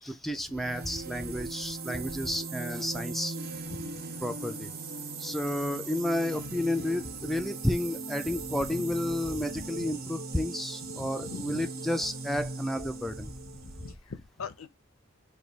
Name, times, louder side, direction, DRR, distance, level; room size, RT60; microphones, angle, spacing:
voice 1, 0.0-3.4 4.2-4.7 5.2-13.3, left 1 dB, ahead, 0.3 m, -31 dB
sound 1, 0.5-13.9, right 3 dB, 50° right, 0.7 m, -39 dB
voice 2, 10.9-11.7 13.8-14.7, left 5 dB, 90° left, 0.6 m, -41 dB
4.8 x 2.2 x 3.9 m
head